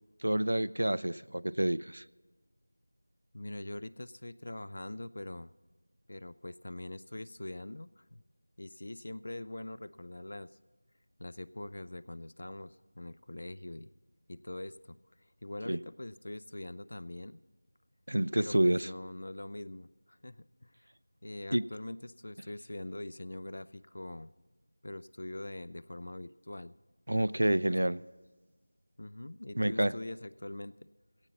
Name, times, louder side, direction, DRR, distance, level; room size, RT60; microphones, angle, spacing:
voice 1, 0.2-2.0 15.7-15.8 18.1-18.9 21.5-21.6 27.1-28.0 29.6-29.9, right 1 dB, 75° right, 0.4 m, -28 dB
voice 2, 3.3-5.5 6.1-8.2 8.6-10.6 11.2-13.9 14.3-15.0 15.4-17.4 18.3-20.9 21.2-24.3 24.8-26.7 27.7-27.8 29.0-30.8, left 1 dB, 35° left, 0.3 m, -43 dB
17.0 x 15.0 x 4.0 m
figure-of-eight pair, 180°, 0 cm